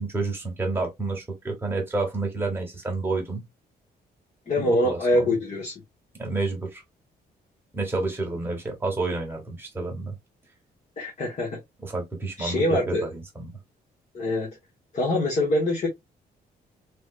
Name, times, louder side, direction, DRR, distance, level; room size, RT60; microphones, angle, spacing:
voice 1, 0.0-3.4 4.6-5.3 6.2-6.8 7.7-10.1 11.8-13.5, right 3 dB, 15° right, 1.2 m, -29 dB
voice 2, 4.5-5.7 11.0-11.6 12.4-13.0 14.1-14.5 14.9-15.9, left 1 dB, 40° left, 1.1 m, -24 dB
3.2 x 3.0 x 2.3 m
cardioid pair, 160°, 17 cm